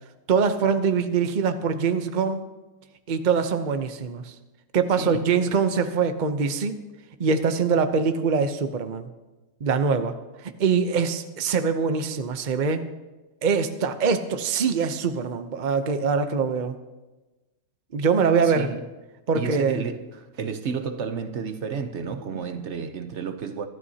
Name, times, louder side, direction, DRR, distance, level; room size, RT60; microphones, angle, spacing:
voice 1, 0.3-2.4 3.1-4.3 4.7-6.8 7.2-9.1 9.6-12.8 13.4-16.8 17.9-18.7 19.3-19.8, right 5 dB, 75° right, 0.4 m, -23 dB
voice 2, 5.0-5.3 18.4-18.9 19.3-23.7, right 5 dB, 55° right, 0.8 m, -31 dB
24.5 x 12.5 x 2.8 m
omnidirectional pair, 2.0 m